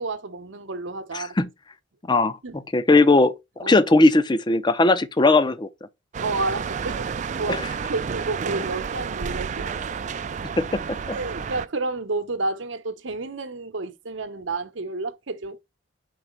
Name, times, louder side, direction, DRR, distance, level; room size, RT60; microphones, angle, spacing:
voice 1, 0.0-1.3 2.4-2.6 3.6-3.8 6.2-7.1 7.4-9.8 11.1-15.6, right 3 dB, 80° right, 0.9 m, -30 dB
voice 2, 1.1-1.5 2.1-2.4 2.7-3.3 3.6-5.7 7.5-7.6 10.6-11.0, left 2 dB, 25° left, 0.6 m, -18 dB
sound 1, 6.1-11.7, right 6 dB, 40° right, 0.3 m, -30 dB
4.7 x 4.0 x 5.3 m
head